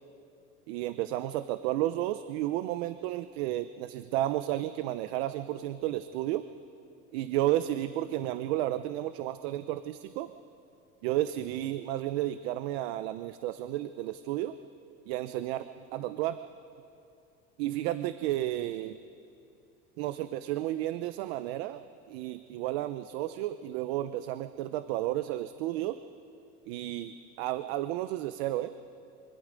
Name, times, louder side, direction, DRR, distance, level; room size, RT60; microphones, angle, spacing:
voice 1, 0.7-6.5 7.1-10.3 11.0-14.6 15.1-16.4 17.6-19.0 20.0-21.8 22.1-26.0 26.7-28.8, right 14 dB, 80° right, 12 dB, 0.7 m, -32 dB
25.5 x 24.0 x 5.2 m, 2.6 s
cardioid pair, 175°, 30 cm